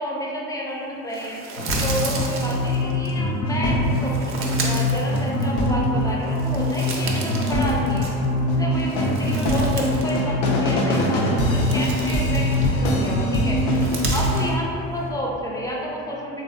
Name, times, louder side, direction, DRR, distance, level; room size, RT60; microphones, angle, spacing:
voice 1, 0.0-1.4 1.8-8.1 8.5-13.6 14.1-16.4, equal, 10° left, -3 dB, 0.6 m, -30 dB
sound 1, 1.1-3.1 3.8-5.8 6.2-8.4 8.8-10.2 10.5-10.6 11.2-12.9 13.6-14.5, right 3 dB, 35° right, 0.6 m, -34 dB
sound 2, 1.6-14.5, left 1 dB, 60° left, 0.6 m, -22 dB
3.4 x 2.6 x 2.2 m, 2.7 s
hypercardioid pair, 70°, 35 cm